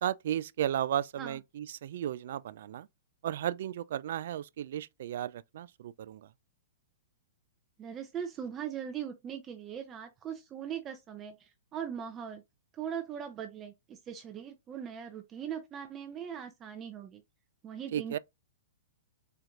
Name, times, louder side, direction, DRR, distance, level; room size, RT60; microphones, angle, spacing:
voice 1, 0.0-2.9 3.2-6.3 17.9-18.2, right 11 dB, 65° right, 0.3 m, -34 dB
voice 2, 7.8-12.4 12.7-17.2 17.6-18.2, right 8 dB, 25° right, 0.6 m, -40 dB
4.5 x 2.5 x 3.5 m
hypercardioid pair, 140°, 0 cm